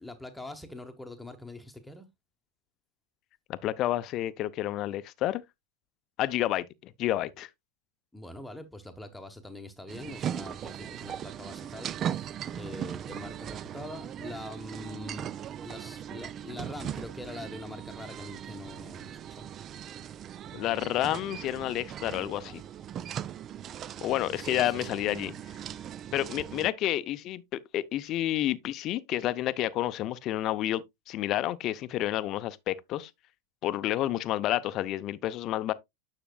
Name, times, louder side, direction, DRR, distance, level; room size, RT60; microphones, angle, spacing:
voice 1, 0.0-2.1 8.1-15.3 15.6-19.5 24.4-25.4, left 1 dB, 5° left, 1.1 m, -44 dB
voice 2, 3.5-5.4 6.2-7.5 20.5-22.6 24.0-25.3 26.1-33.1 33.6-35.7, left 13 dB, 45° left, 0.6 m, -30 dB
sound 1, 9.9-26.7, right 9 dB, 35° right, 0.4 m, -39 dB
10.0 x 5.9 x 2.3 m
hypercardioid pair, 95°, 0 cm